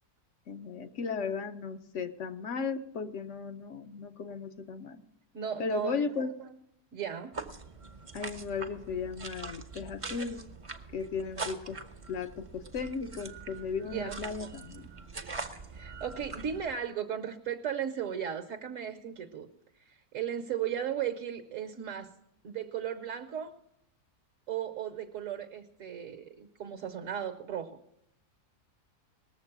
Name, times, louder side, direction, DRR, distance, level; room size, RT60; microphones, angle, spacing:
voice 1, 0.5-5.0 5.6-6.3 8.1-10.4 10.9-11.8 12.1-14.9, left 5 dB, 60° left, 9 dB, 1.0 m, -36 dB
voice 2, 5.3-6.0 6.9-7.3 13.8-14.2 15.7-19.5 19.9-22.1 22.4-23.5 24.5-27.8, right 9 dB, 60° right, 8 dB, 1.2 m, -36 dB
sound 1, 7.3-16.7, right 4 dB, 30° right, 0.6 m, -43 dB
19.5 x 7.2 x 5.9 m, 0.77 s
omnidirectional pair, 1.6 m